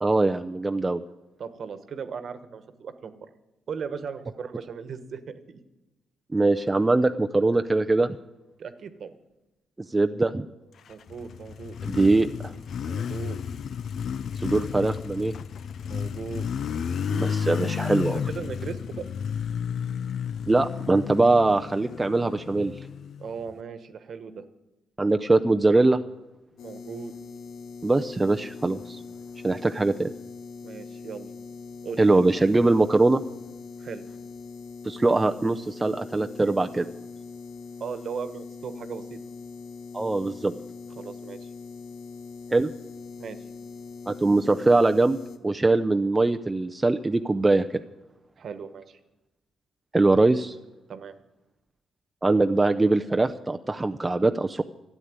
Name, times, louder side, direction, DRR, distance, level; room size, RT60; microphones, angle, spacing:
voice 1, 0.0-1.0 6.3-8.2 9.9-10.5 11.9-12.5 14.4-15.3 17.1-18.2 20.5-22.7 25.0-26.0 27.8-29.0 29.4-30.1 32.0-33.2 34.8-36.8 39.9-40.5 42.5-42.7 44.1-45.2 45.4-47.8 49.9-50.5 52.2-54.6, right 2 dB, 15° right, 6 dB, 0.5 m, -22 dB
voice 2, 1.4-3.3 3.7-5.6 8.6-9.2 10.9-11.8 12.9-13.4 15.8-16.5 18.3-19.1 23.2-24.4 26.6-27.1 30.6-31.3 31.8-32.0 33.8-34.0 37.8-39.2 41.0-41.5 43.2-43.4 48.4-49.0 50.9-51.1, right 6 dB, 55° right, 11 dB, 1.2 m, -37 dB
Motorcycle, 10.9-23.6, left 7 dB, 60° left, 0.4 m, -32 dB
sound 1, 26.6-45.4, left 4 dB, 85° left, 1.2 m, -42 dB
12.5 x 8.2 x 9.6 m, 1.0 s
cardioid pair, 90°, 0 cm